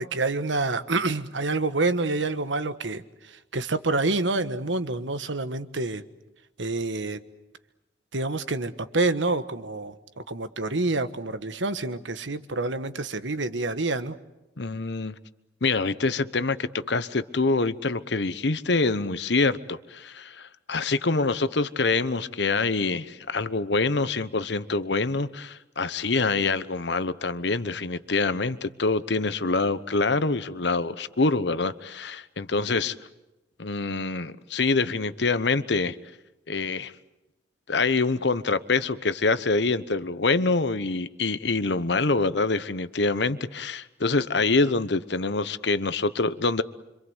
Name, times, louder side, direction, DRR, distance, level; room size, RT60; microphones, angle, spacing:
voice 1, 0.0-6.0 6.6-7.2 8.1-14.2, right 3 dB, 80° right, 11 dB, 1.4 m, -27 dB
voice 2, 14.6-15.1 15.6-32.9 33.6-36.0 36.5-36.9 37.7-46.6, left 3 dB, 65° left, 14 dB, 1.0 m, -25 dB
26.5 x 25.5 x 8.1 m, 0.97 s
head